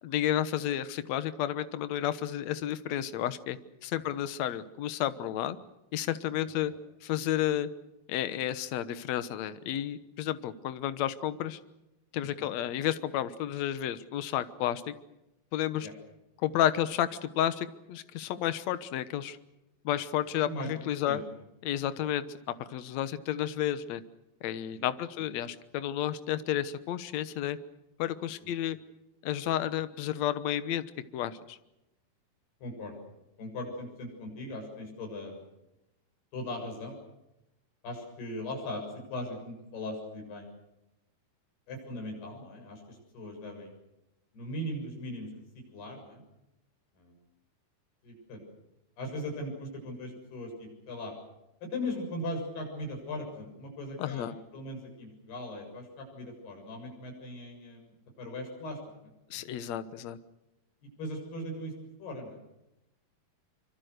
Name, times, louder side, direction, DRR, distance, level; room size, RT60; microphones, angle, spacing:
voice 1, 0.0-5.6 5.9-6.7 7.0-7.7 8.1-11.6 12.1-14.9 15.5-15.9 16.4-19.4 19.8-21.2 21.6-22.2 22.7-24.0 24.4-27.6 28.0-28.8 29.2-30.9 31.1-31.6 54.0-54.4 59.3-60.2, left 11 dB, 65° left, 13 dB, 1.8 m, -31 dB
voice 2, 32.6-33.0 33.4-35.4 36.3-36.9 37.8-38.8 39.1-40.4 41.7-43.7 44.3-45.3 45.7-46.2 47.0-47.1 48.0-48.4 49.0-51.1 51.6-58.8 61.0-61.7 62.0-62.4, left 1 dB, 85° left, 2 dB, 9.3 m, -39 dB
25.5 x 25.5 x 6.6 m, 0.92 s
omnidirectional pair, 4.5 m